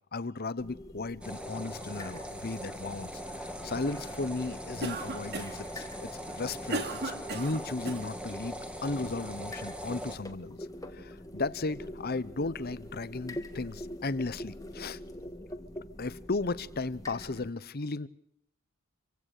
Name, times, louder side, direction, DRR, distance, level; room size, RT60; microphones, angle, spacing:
voice 1, 0.1-10.6 10.9-15.0 16.0-18.1, left 3 dB, 45° left, 0.8 m, -35 dB
sound 1, 0.6-17.5, left 1 dB, 15° left, 1.6 m, -45 dB
sound 2, 1.2-10.2, equal, 5° right, 2.3 m, -41 dB
Cough, 4.8-5.7 6.3-8.1, right 2 dB, 45° right, 2.6 m, -36 dB
27.0 x 16.5 x 6.6 m
head